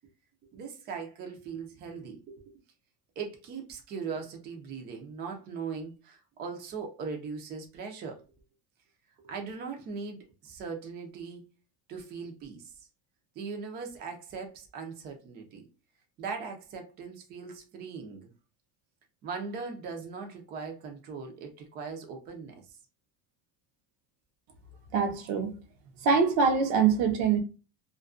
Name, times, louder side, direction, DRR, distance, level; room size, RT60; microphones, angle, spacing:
voice 1, 0.5-2.4 3.2-8.2 9.2-11.4 11.9-12.9 13.4-15.7 16.2-18.3 19.2-22.8, right 5 dB, 30° right, 0.5 m, -39 dB
voice 2, 24.9-25.6 26.0-27.4, right 5 dB, 65° right, 0.7 m, -24 dB
2.3 x 2.2 x 2.4 m
cardioid pair, 155°, 35 cm